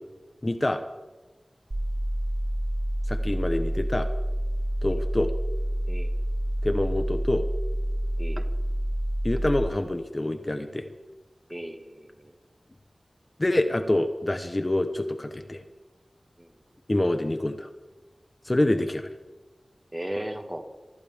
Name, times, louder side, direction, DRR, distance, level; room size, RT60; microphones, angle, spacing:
voice 1, 0.4-0.8 3.1-4.1 4.8-5.3 6.6-7.4 9.2-10.9 13.4-15.6 16.9-17.7 18.4-19.1, left 1 dB, 30° left, 7 dB, 1.0 m, -26 dB
sound 1, 1.7-9.7, equal, 35° right, 0.9 m, -28 dB
voice 2, 11.5-12.3 16.4-16.5 19.9-20.7, right 1 dB, 15° right, 5 dB, 1.8 m, -36 dB
24.0 x 13.5 x 3.6 m, 1.2 s
wide cardioid pair, 65°, 0 cm